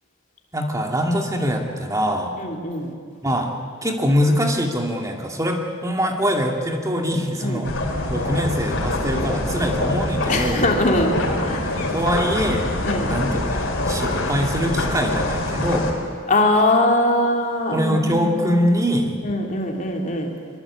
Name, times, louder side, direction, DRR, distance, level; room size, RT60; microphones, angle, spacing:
voice 1, 0.5-2.4 3.2-7.7 8.1-10.7 11.7-12.7 13.1-16.0 17.7-19.2, equal, 15° right, 2 dB, 2.5 m, -23 dB
voice 2, 2.4-2.9 7.4-7.6 10.3-11.7 12.8-13.2 16.3-18.6 19.2-20.3, left 1 dB, 35° left, 1 dB, 3.2 m, -21 dB
sound 1, 7.6-15.9, left 1 dB, 60° left, 4.4 m, -24 dB
24.0 x 23.0 x 8.6 m, 2.1 s
head